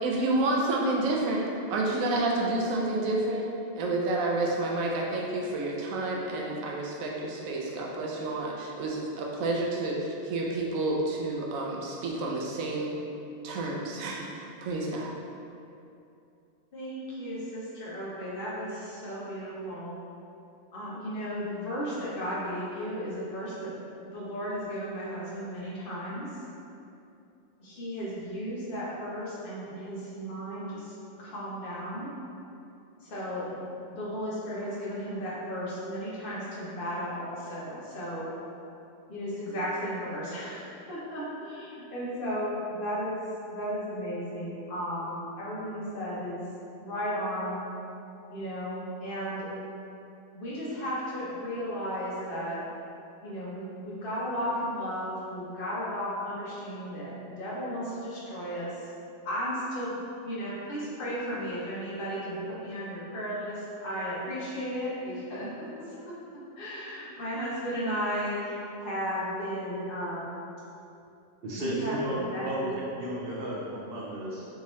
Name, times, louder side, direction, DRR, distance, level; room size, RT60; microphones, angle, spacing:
voice 1, 0.0-3.4 3.8-13.0 13.4-15.1, right 2 dB, 85° right, -2 dB, 1.0 m, -29 dB
voice 2, 16.7-20.0 20.7-26.3 27.6-32.1 33.0-38.3 39.1-43.2 43.5-46.4 46.8-47.7 48.3-49.5 50.3-52.6 53.2-58.9 59.2-70.4 71.5-72.5, equal, 45° left, -7 dB, 0.9 m, -35 dB
voice 3, 71.4-72.7 73.0-74.5, right 1 dB, 60° right, -5 dB, 0.7 m, -33 dB
3.6 x 2.8 x 3.0 m, 2.7 s
omnidirectional pair, 1.4 m